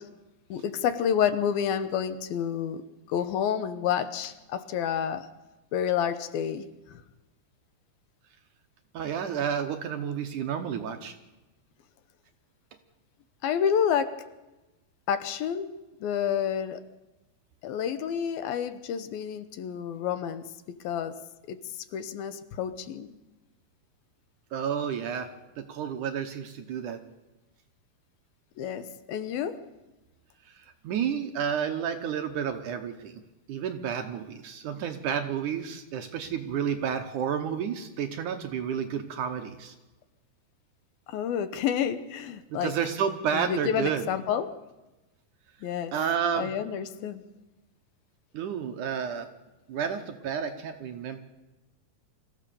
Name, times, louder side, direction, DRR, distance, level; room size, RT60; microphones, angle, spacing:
voice 1, 0.5-2.8 3.1-5.3 5.7-7.0 13.4-14.2 15.1-15.7 16.0-16.8 17.6-20.5 20.8-21.2 21.5-21.6 21.9-23.1 28.6-29.6 41.1-42.7 43.3-44.5 45.6-45.9 46.3-47.2, left 8 dB, 75° left, 12 dB, 2.7 m, -29 dB
voice 2, 8.9-11.2 24.5-25.3 25.6-27.0 30.5-33.2 33.5-39.7 42.5-44.0 45.9-46.5 48.3-49.3 49.7-51.2, right 8 dB, 70° right, 7 dB, 2.2 m, -31 dB
24.5 x 15.0 x 6.9 m, 1.1 s
omnidirectional pair, 4.4 m